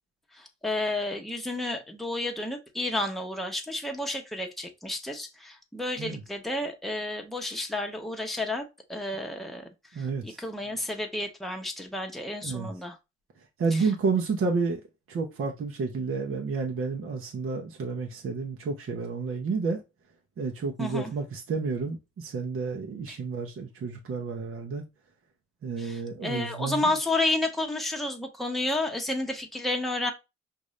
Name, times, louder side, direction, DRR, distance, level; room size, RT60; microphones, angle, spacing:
voice 1, 0.3-8.6 8.9-13.0 13.7-13.9 20.8-21.1 23.1-23.2 25.8-30.1, left 2 dB, ahead, 0.9 m, -31 dB
voice 2, 9.9-10.4 12.4-12.7 13.6-14.8 15.1-19.8 20.4-24.8 25.6-26.8, right 4 dB, 45° right, 0.8 m, -30 dB
5.1 x 2.6 x 3.2 m
cardioid pair, 90°, 30 cm